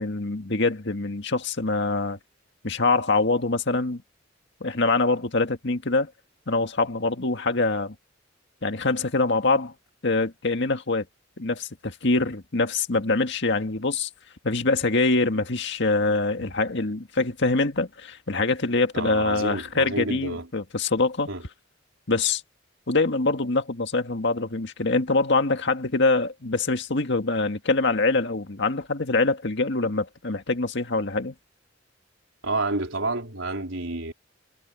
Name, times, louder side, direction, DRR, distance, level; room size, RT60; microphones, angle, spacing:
voice 1, 0.0-2.2 2.6-4.0 4.6-6.1 6.5-8.0 8.6-9.7 10.0-11.1 11.4-14.1 14.4-21.3 22.1-22.4 22.9-31.3, left 3 dB, 65° left, 1.9 m, -24 dB
voice 2, 18.9-20.5 21.3-21.4 32.4-34.1, right 2 dB, 85° right, 3.9 m, -29 dB
head